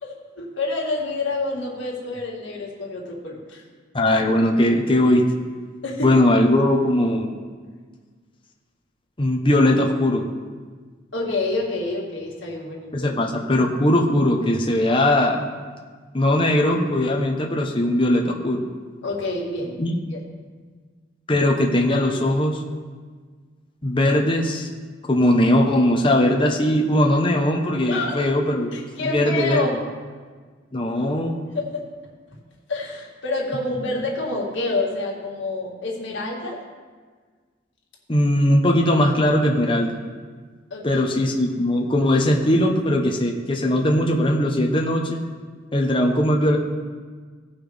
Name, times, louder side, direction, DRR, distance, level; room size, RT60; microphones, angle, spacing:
voice 1, 0.0-3.6 5.8-6.2 11.1-13.1 19.0-19.8 20.1-20.6 27.9-28.2 28.7-29.8 31.5-31.9 32.7-36.6 40.7-41.0, left 2 dB, 70° left, -2 dB, 2.0 m, -28 dB
voice 2, 3.9-5.3 6.0-7.3 9.2-10.2 12.9-15.4 16.1-18.6 19.8-20.0 21.3-22.6 23.8-24.7 25.1-29.7 30.7-31.4 38.1-40.0 40.8-45.2 45.7-46.6, left 1 dB, 25° left, 1 dB, 0.9 m, -19 dB
17.0 x 5.6 x 3.5 m, 1.5 s
head